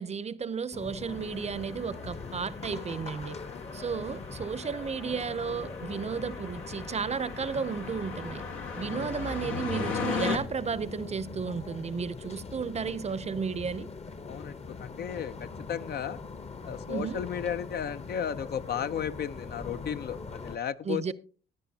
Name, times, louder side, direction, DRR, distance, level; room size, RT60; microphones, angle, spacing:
voice 1, 0.0-3.4 3.7-8.4 8.8-13.9 16.9-17.2 20.9-21.1, right 6 dB, 35° right, 0.6 m, -33 dB
sound 1, 0.7-20.6, left 4 dB, 30° left, 0.9 m, -42 dB
sound 2, 1.1-10.4, left 5 dB, 90° left, 1.7 m, -38 dB
voice 2, 14.3-16.2 16.6-21.1, left 8 dB, 55° left, 0.5 m, -35 dB
16.0 x 10.0 x 2.8 m
cardioid pair, 90°, 20 cm